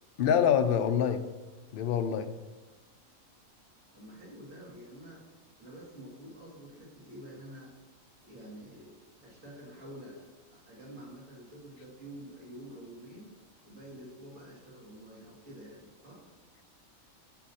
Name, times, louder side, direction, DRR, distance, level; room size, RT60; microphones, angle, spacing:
voice 1, 0.2-1.3 1.7-2.3, left 8 dB, 65° left, 8 dB, 0.5 m, -26 dB
voice 2, 3.9-5.3 5.6-7.7 8.2-13.3 13.6-16.2, right 1 dB, 75° right, -6 dB, 2.5 m, -48 dB
8.3 x 6.3 x 2.8 m, 1.2 s
omnidirectional pair, 1.4 m